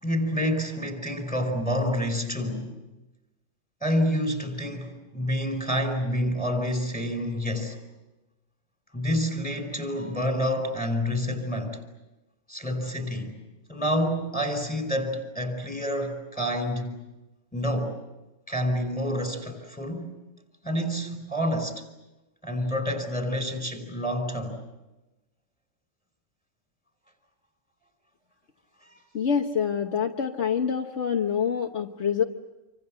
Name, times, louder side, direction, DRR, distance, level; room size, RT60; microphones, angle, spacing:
voice 1, 0.0-2.8 3.8-7.8 8.9-11.8 12.5-13.4 13.7-17.0 17.5-18.0 18.5-20.1 20.6-21.8 22.4-24.6 28.8-29.0, equal, 5° left, 4.8 m, -28 dB
voice 2, 29.1-32.2, left 7 dB, 60° left, 1.4 m, -26 dB
27.5 x 25.0 x 7.7 m
omnidirectional pair, 1.3 m